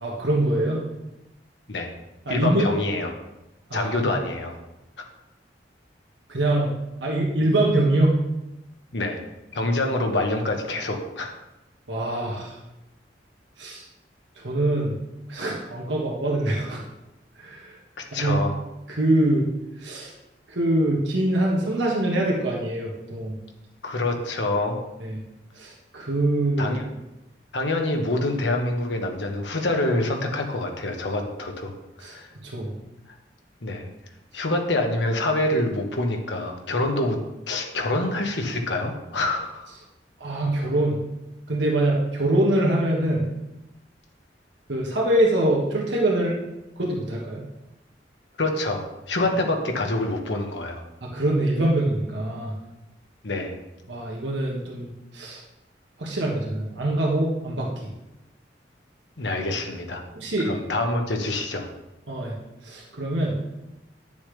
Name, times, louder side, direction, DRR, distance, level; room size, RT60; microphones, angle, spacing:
voice 1, 0.0-0.8 2.2-2.7 3.7-4.1 6.3-6.7 7.0-8.2 11.9-12.6 13.6-13.8 14.3-14.9 15.3-16.8 17.3-17.8 18.1-18.4 18.9-19.5 19.8-20.1 20.5-23.4 25.0-25.2 25.5-26.7 32.0-32.2 32.4-32.7 40.2-41.0 41.5-43.3 44.7-46.4 46.8-47.4 51.0-52.6 53.9-55.4 56.0-57.9 60.1-60.5 62.1-62.3 62.6-63.4, right 1 dB, 85° right, -3 dB, 1.6 m, -24 dB
voice 2, 2.3-3.1 3.7-4.6 8.9-9.2 9.5-11.3 18.1-18.5 23.8-24.8 26.6-26.8 27.5-32.3 33.6-33.9 34.3-37.2 37.5-39.7 48.4-50.8 53.2-53.6 59.2-60.0 60.4-61.7, left 2 dB, 80° left, 3 dB, 1.3 m, -26 dB
10.0 x 7.1 x 3.4 m, 0.95 s
head